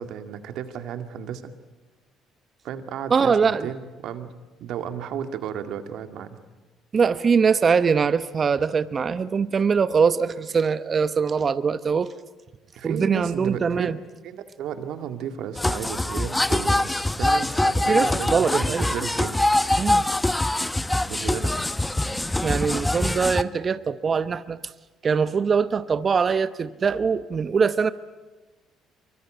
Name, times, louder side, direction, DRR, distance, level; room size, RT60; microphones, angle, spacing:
voice 1, 0.0-1.4 2.6-4.3 4.6-6.4 12.8-13.9 14.2-16.9 17.1-19.4 21.1-21.5, right 8 dB, 70° right, 8 dB, 2.1 m, -33 dB
voice 2, 3.1-3.7 6.9-12.1 12.8-14.0 17.9-18.9 19.8-20.0 22.4-24.6 25.0-27.9, right 5 dB, 40° right, 13 dB, 1.0 m, -22 dB
sound 1, 15.6-23.4, left 1 dB, 10° left, 0.9 m, -24 dB
25.5 x 24.0 x 9.1 m, 1.2 s
hypercardioid pair, 60°, 0 cm